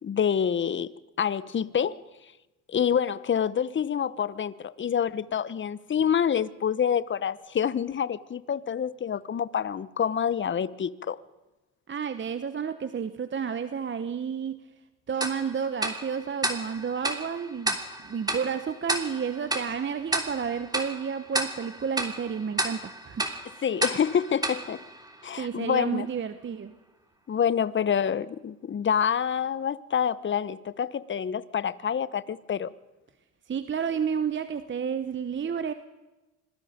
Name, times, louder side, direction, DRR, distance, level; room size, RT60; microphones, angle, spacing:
voice 1, 0.0-0.9 1.2-2.0 2.7-11.2 23.6-24.8 25.2-26.1 27.3-32.7, left 8 dB, 30° left, 17 dB, 0.9 m, -27 dB
voice 2, 11.9-14.6 15.1-23.3 25.4-26.7 33.5-35.7, right 7 dB, 30° right, 11 dB, 1.1 m, -31 dB
Tick-tock, 15.2-25.7, right 1 dB, 10° right, 3.0 m, -33 dB
25.5 x 20.0 x 5.2 m, 1.1 s
supercardioid pair, 75°, 38 cm